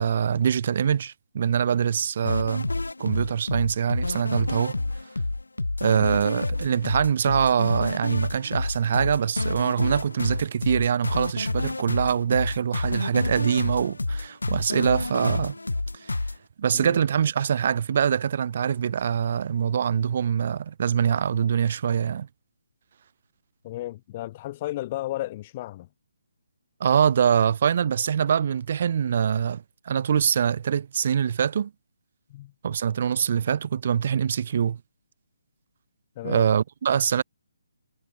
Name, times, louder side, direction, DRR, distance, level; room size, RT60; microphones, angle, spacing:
voice 1, 0.0-2.7 3.0-4.8 5.8-15.6 15.9-16.2 16.6-22.3 26.8-31.7 32.6-34.8 36.2-37.2, right 8 dB, 45° right, 2.2 m, -24 dB
sound 1, 2.3-16.4, left 2 dB, 80° left, 2.8 m, -29 dB
voice 2, 23.6-25.9 32.3-32.5 36.2-36.5, left 15 dB, 30° left, 3.2 m, -33 dB
figure-of-eight pair, 145°, 0 cm